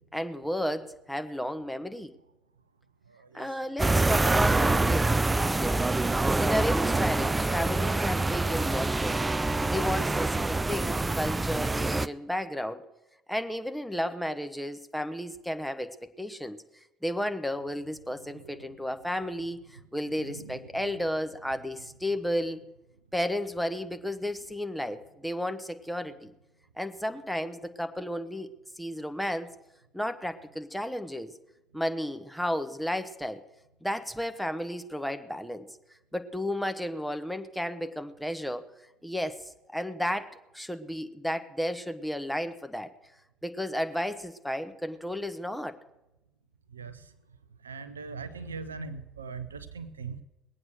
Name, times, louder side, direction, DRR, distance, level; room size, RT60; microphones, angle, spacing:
voice 1, 0.1-2.1 3.3-5.8 6.3-9.2 9.7-12.8 13.3-16.6 17.0-22.6 23.1-26.3 26.8-28.5 28.8-29.5 29.9-31.3 31.7-33.4 33.8-35.7 36.1-38.7 39.0-39.4 39.7-42.9 43.4-45.8, equal, 5° left, 8 dB, 1.2 m, -33 dB
voice 2, 3.1-3.5 18.4-18.7 20.1-20.6 46.7-47.0 47.6-50.2, right 4 dB, 85° right, 12 dB, 0.7 m, -41 dB
sound 1, 3.8-12.1, right 2 dB, 15° right, 0.5 m, -26 dB
20.5 x 8.7 x 6.6 m, 0.93 s
figure-of-eight pair, 55°, 0 cm